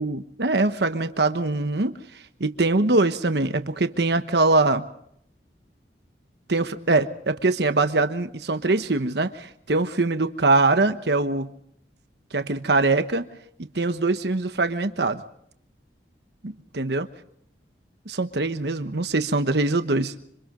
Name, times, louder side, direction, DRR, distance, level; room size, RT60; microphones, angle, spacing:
voice 1, 0.0-4.9 6.5-11.5 12.3-13.2 13.6-15.2 16.4-17.1 18.1-20.2, right 2 dB, 70° right, 9 dB, 1.2 m, -23 dB
27.0 x 26.0 x 3.8 m, 0.71 s
head